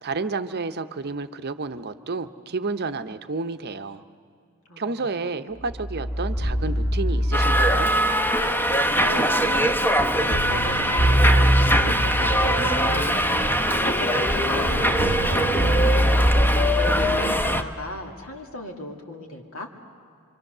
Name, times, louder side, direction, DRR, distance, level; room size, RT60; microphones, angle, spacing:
voice 1, 0.0-4.0 4.8-7.9, right 3 dB, 50° right, 10 dB, 0.7 m, -30 dB
voice 2, 4.7-5.3 8.6-13.4 13.8-16.3 16.8-19.7, left 1 dB, 75° left, 2 dB, 2.4 m, -36 dB
sound 1, 5.6-17.7, equal, 40° left, 2.9 m, -25 dB
Subway metro underground, 7.3-17.6, equal, 10° left, 0.8 m, -22 dB
26.0 x 24.5 x 6.7 m, 2.2 s
head